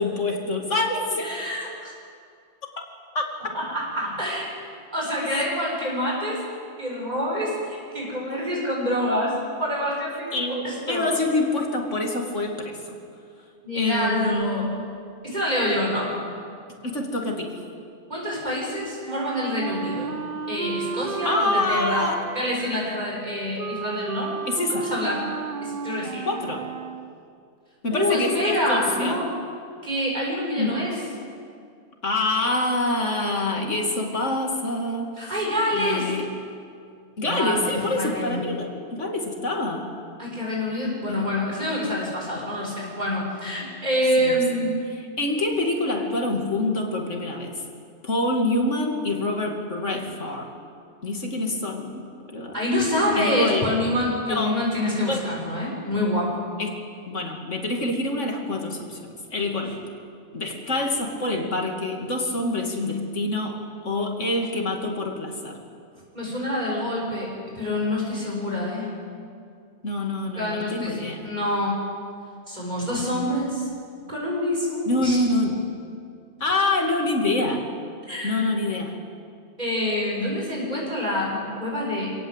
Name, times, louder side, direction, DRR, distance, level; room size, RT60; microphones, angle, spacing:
voice 1, 0.0-1.3 3.1-3.3 5.2-5.4 10.3-12.8 13.7-14.8 16.8-17.5 21.2-22.2 24.5-24.9 26.3-26.7 27.8-29.2 30.6-30.8 32.0-35.3 35.7-36.3 37.2-39.9 41.1-41.3 44.2-44.4 45.0-47.5 48.0-50.5 51.0-52.0 52.3-52.5 53.2-53.7 54.1-54.7 55.1-55.2 56.6-59.0 59.3-59.7 60.3-65.6 69.8-71.3 74.9-75.7 76.4-77.7 78.2-78.9, left 2 dB, 85° left, 2 dB, 2.9 m, -26 dB
voice 2, 1.2-1.9 3.5-4.5 4.9-6.4 6.8-10.3 10.6-11.1 13.6-14.7 15.2-16.1 18.1-20.1 20.5-22.1 22.3-24.4 24.8-25.2 25.6-26.2 27.9-29.3 29.8-31.0 35.2-36.1 37.2-38.4 40.2-44.8 52.5-56.3 66.1-68.9 70.4-71.8 72.5-73.7 74.1-75.2 78.1-78.4 79.6-82.2, left 1 dB, 35° right, -3 dB, 7.1 m, -26 dB
Wind instrument woodwind instrument, 19.0-27.2, right 6 dB, 55° right, 0.9 m, -33 dB
26.5 x 18.0 x 8.2 m, 2.3 s
omnidirectional pair, 1.2 m